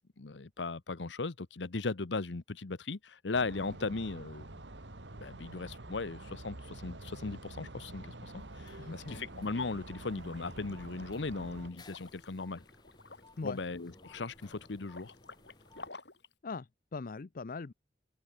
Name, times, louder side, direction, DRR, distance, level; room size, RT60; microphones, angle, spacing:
voice 1, 0.2-4.5 5.1-12.6 13.4-15.1, left 3 dB, 85° left, 0.9 m, -38 dB
sound 1, 3.3-11.7, right 2 dB, 80° right, 2.1 m, -48 dB
sound 2, 8.4-15.9, left 2 dB, 25° left, 5.0 m, -59 dB
voice 2, 8.8-9.2 13.4-13.6 16.4-17.7, left 4 dB, 50° left, 0.6 m, -41 dB
Liquid, 10.2-16.3, left 3 dB, 70° left, 4.7 m, -53 dB
head